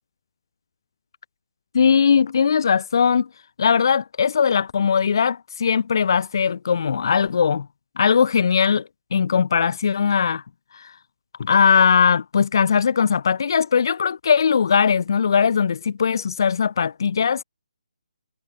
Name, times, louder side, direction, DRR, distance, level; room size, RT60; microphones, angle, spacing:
voice 1, 1.7-3.3 3.6-7.7 8.0-10.4 10.7-10.9 11.4-17.4, left 6 dB, 35° left, 4.4 m, -19 dB
hypercardioid pair, 180°, 4 cm